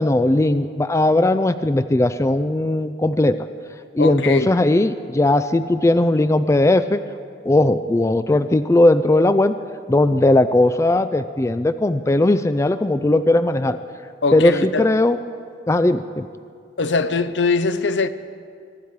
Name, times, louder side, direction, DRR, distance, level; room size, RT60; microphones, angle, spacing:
voice 1, 0.0-3.4 3.9-7.0 7.4-9.6 9.9-13.8 14.3-15.2 15.7-16.3, left 2 dB, 15° left, 0.3 m, -18 dB
voice 2, 4.0-4.5 14.2-14.9 16.8-18.1, left 4 dB, 75° left, 0.6 m, -21 dB
23.5 x 12.0 x 4.7 m
head